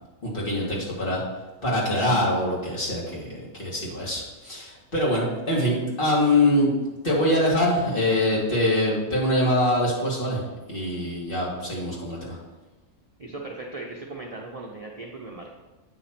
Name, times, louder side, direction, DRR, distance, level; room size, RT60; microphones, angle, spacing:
voice 1, 0.2-1.2 1.6-6.7 7.0-10.4 10.7-12.4, left 1 dB, 40° left, -5 dB, 1.9 m, -24 dB
voice 2, 13.2-15.6, right 2 dB, 40° right, -2 dB, 0.6 m, -38 dB
8.7 x 3.0 x 5.7 m, 1.1 s
omnidirectional pair, 1.4 m